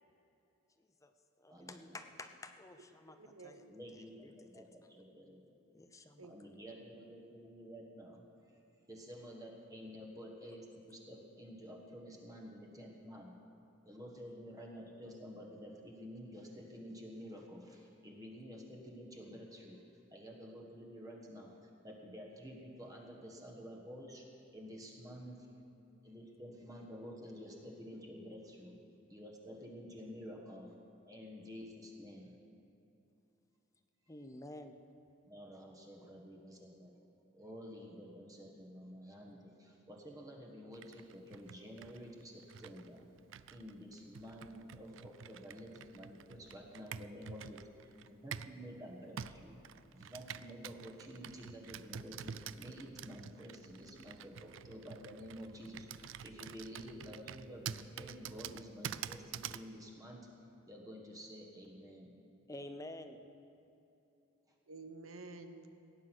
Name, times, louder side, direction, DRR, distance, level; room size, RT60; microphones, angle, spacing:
voice 1, 0.8-1.1 1.4-3.2 3.4-3.6 3.9-4.7 5.7-6.3 34.1-34.7 62.5-63.2, left 1 dB, 15° left, 8 dB, 0.6 m, -50 dB
voice 2, 3.0-3.7 6.2-6.3 6.7-6.9 64.7-65.7, right 3 dB, 85° right, 8 dB, 0.9 m, -51 dB
voice 3, 3.7-5.5 6.3-8.3 8.9-13.4 13.8-19.8 20.1-21.6 21.8-25.5 26.0-28.8 29.1-30.7 31.0-32.4 35.3-37.0 37.3-43.1 43.5-49.6 49.9-60.3 60.7-62.1, equal, 15° right, -1 dB, 1.3 m, -50 dB
Computer keyboard, 40.7-48.6 49.2-59.7, right 8 dB, 65° right, 0.4 m, -48 dB
17.0 x 9.6 x 6.2 m, 2.8 s
head